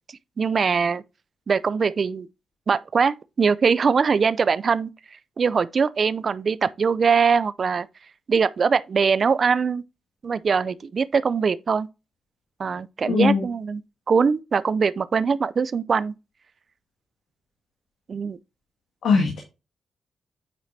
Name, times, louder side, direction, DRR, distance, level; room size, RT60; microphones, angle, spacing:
voice 1, 0.4-1.0 1.5-2.3 2.7-4.9 5.4-7.9 8.3-9.8 10.2-11.9 12.6-13.8 14.1-16.1 18.1-18.4, right 5 dB, 55° right, 0.4 m, -22 dB
voice 2, 13.1-13.4 19.0-19.4, left 5 dB, 80° left, 1.6 m, -20 dB
9.0 x 4.9 x 2.7 m
cardioid pair, 55°, 0 cm